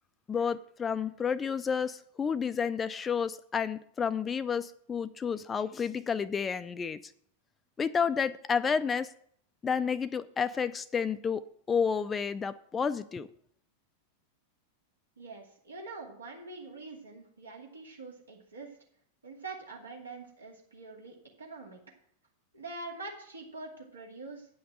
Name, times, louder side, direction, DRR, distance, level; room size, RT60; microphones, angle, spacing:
voice 1, 0.3-7.0 7.8-9.1 9.6-13.3, left 6 dB, 20° left, 12 dB, 0.4 m, -30 dB
voice 2, 15.2-18.8 19.2-21.8 22.5-24.5, right 3 dB, 75° right, -1 dB, 2.4 m, -44 dB
9.4 x 5.9 x 7.6 m, 0.63 s
figure-of-eight pair, 90°, 0 cm